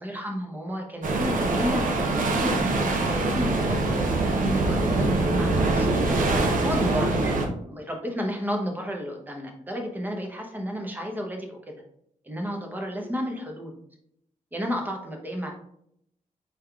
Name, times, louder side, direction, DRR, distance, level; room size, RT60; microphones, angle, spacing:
voice 1, 0.0-7.4 7.6-11.7 12.2-13.7 14.5-15.5, equal, 15° right, 1 dB, 0.8 m, -32 dB
sound 1, 1.0-7.5, right 2 dB, 75° right, 0.7 m, -24 dB
4.5 x 3.4 x 2.3 m, 0.72 s
wide cardioid pair, 115°, 14 cm